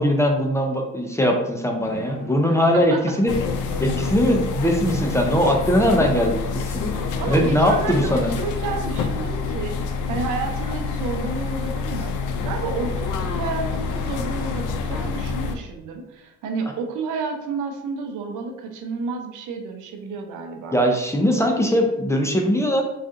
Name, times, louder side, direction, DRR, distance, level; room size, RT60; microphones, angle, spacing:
voice 1, 0.0-3.3 3.8-8.3 20.7-22.8, equal, 10° left, 2 dB, 0.4 m, -20 dB
sound 1, 1.8-4.5 5.0-6.1 8.9-9.0 9.6-9.8, left 1 dB, 45° left, 0.7 m, -41 dB
sound 2, 3.3-15.5, left 5 dB, 80° left, 0.5 m, -27 dB
voice 2, 6.9-20.8, right 4 dB, 80° right, 4 dB, 0.6 m, -31 dB
3.8 x 2.4 x 2.5 m, 0.91 s
cardioid pair, 90°, 30 cm